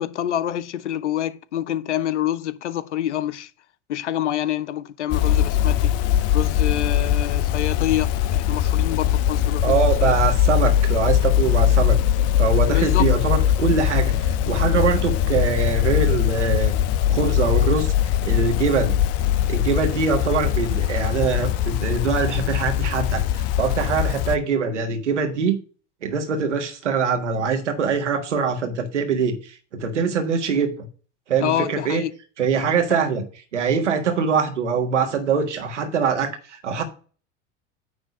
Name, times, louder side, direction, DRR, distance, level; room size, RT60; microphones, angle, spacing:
voice 1, 0.0-3.5 3.9-5.9 6.3-9.8 10.0-10.1 12.7-13.1 31.4-32.1 32.9-33.0, left 11 dB, 80° left, 0.7 m, -27 dB
sound 1, 5.1-24.4, left 11 dB, 45° left, 0.7 m, -21 dB
voice 2, 9.6-12.0 12.4-16.7 17.1-19.0 19.5-25.6 26.0-30.9 31.3-32.0 32.4-33.2 33.5-36.8, right 5 dB, 85° right, 1.6 m, -23 dB
9.6 x 3.5 x 6.7 m
hypercardioid pair, 85°, 35 cm